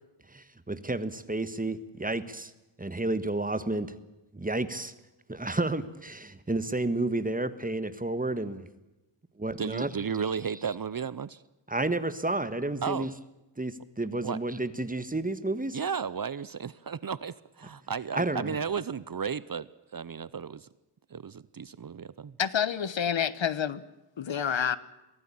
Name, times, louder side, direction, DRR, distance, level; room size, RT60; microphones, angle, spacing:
voice 1, 0.3-2.5 2.8-3.9 4.3-4.9 5.3-8.7 9.4-9.9 11.7-13.1 13.6-15.8 18.1-18.6, right 2 dB, 15° right, 1.5 m, -31 dB
voice 2, 9.6-11.4 12.8-13.1 14.2-14.4 15.7-20.7 21.1-22.4, right 6 dB, 45° right, 0.7 m, -34 dB
voice 3, 22.4-23.8 24.2-24.8, left 8 dB, 65° left, 1.2 m, -28 dB
23.5 x 16.5 x 8.6 m
wide cardioid pair, 120°, 49 cm